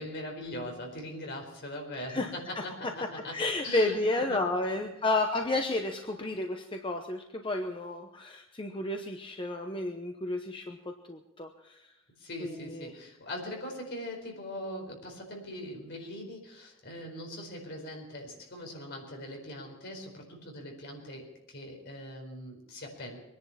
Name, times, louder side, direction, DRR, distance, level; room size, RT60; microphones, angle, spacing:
voice 1, 0.0-4.9 12.2-23.2, left 1 dB, 55° left, 2 dB, 4.6 m, -41 dB
voice 2, 2.1-2.6 3.3-11.9 12.4-12.9, left 2 dB, 25° left, 4 dB, 0.9 m, -32 dB
23.0 x 10.5 x 5.7 m, 0.92 s
head